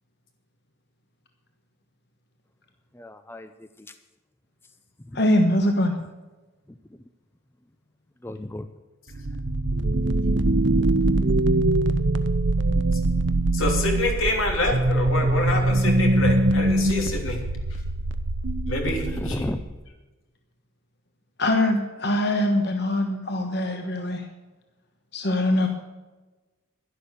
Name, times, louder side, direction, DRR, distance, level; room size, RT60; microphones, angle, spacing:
voice 1, 2.9-3.9 5.0-5.2 6.7-6.8 8.2-8.7 10.8-10.9 19.1-19.6, left 1 dB, 10° left, 10 dB, 0.5 m, -34 dB
voice 2, 5.1-5.9 21.4-24.3 25.1-25.7, left 1 dB, 50° left, 4 dB, 1.2 m, -22 dB
sound 1, 9.1-19.8, right 2 dB, 60° right, 0.7 m, -23 dB
voice 3, 13.5-17.4 18.7-19.5, left 2 dB, 80° left, 2 dB, 3.1 m, -26 dB
11.5 x 11.5 x 6.6 m, 1.2 s
head